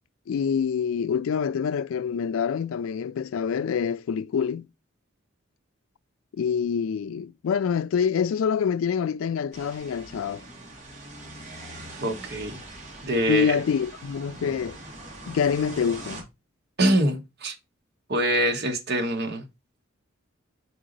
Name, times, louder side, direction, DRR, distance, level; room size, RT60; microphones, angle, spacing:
voice 1, 0.3-4.7 6.3-10.4 13.3-14.8 15.3-16.2, left 7 dB, 75° left, 0.3 m, -26 dB
sound 1, 9.5-16.2, right 2 dB, 35° right, 2.1 m, -42 dB
voice 2, 12.0-12.6 13.0-13.6 16.8-17.5 18.1-19.4, right 1 dB, 50° right, 1.2 m, -24 dB
4.6 x 4.0 x 5.1 m
head